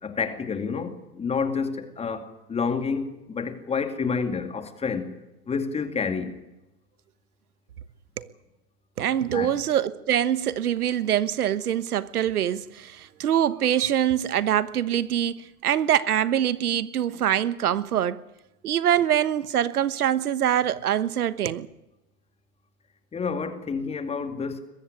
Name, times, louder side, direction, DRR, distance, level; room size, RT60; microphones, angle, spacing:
voice 1, 0.0-5.1 5.5-6.4 9.3-9.5 23.1-24.6, left 5 dB, 15° left, 2.2 m, -29 dB
voice 2, 9.0-18.2 18.6-21.7, right 10 dB, 75° right, 1.2 m, -24 dB
22.0 x 15.0 x 9.9 m
hypercardioid pair, 125°, 45 cm